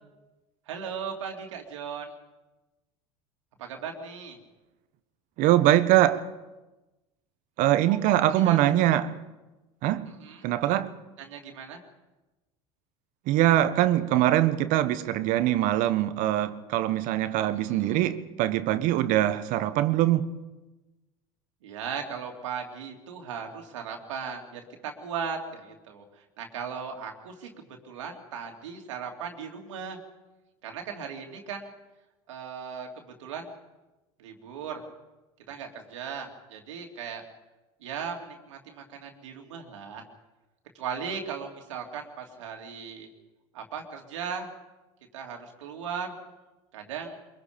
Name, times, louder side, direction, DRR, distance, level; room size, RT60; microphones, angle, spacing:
voice 1, 0.7-2.1 3.6-4.4 7.8-8.6 10.1-10.4 11.2-11.8 17.6-18.0 21.6-30.0 30.6-31.7 32.3-33.5 34.2-34.8 35.5-37.2 37.8-40.0 40.7-43.1 43.5-44.5 45.1-46.2 46.7-47.2, right 6 dB, 90° right, 2.8 m, -37 dB
voice 2, 5.4-6.3 7.6-9.2 9.8-10.1 10.4-10.9 13.3-20.3, right 13 dB, 60° right, 1.2 m, -23 dB
23.0 x 22.5 x 5.2 m
hypercardioid pair, 90°, 15 cm